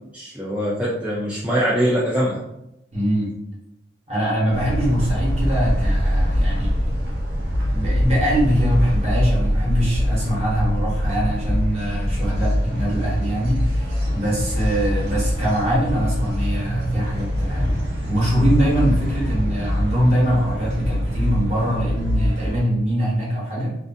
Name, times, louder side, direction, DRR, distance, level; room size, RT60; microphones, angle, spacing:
voice 1, 0.1-2.4, equal, 5° right, -7 dB, 0.3 m, -22 dB
voice 2, 2.9-3.3 4.1-6.9 7.7-23.8, equal, 35° right, -6 dB, 0.9 m, -23 dB
sound 1, 4.5-22.6, equal, 60° right, 0.6 m, -23 dB
2.4 x 2.4 x 2.5 m, 0.85 s
head